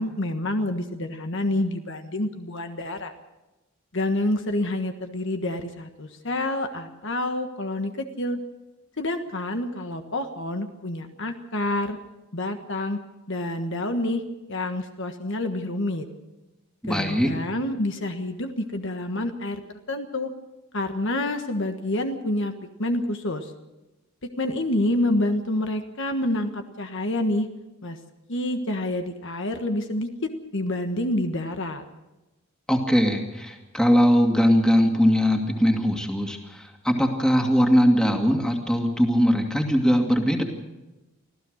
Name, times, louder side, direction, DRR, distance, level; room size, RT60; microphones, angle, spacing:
voice 1, 0.0-3.1 3.9-8.4 9.0-12.0 12.3-13.0 13.3-14.2 14.5-16.1 16.9-19.6 19.9-20.3 20.7-22.5 22.8-23.5 24.4-27.5 27.8-28.0 28.3-31.8, left 1 dB, 55° left, 6 dB, 1.5 m, -28 dB
voice 2, 16.8-17.3 32.7-40.4, equal, 5° left, 2 dB, 2.4 m, -21 dB
25.5 x 15.5 x 6.5 m, 1.0 s
head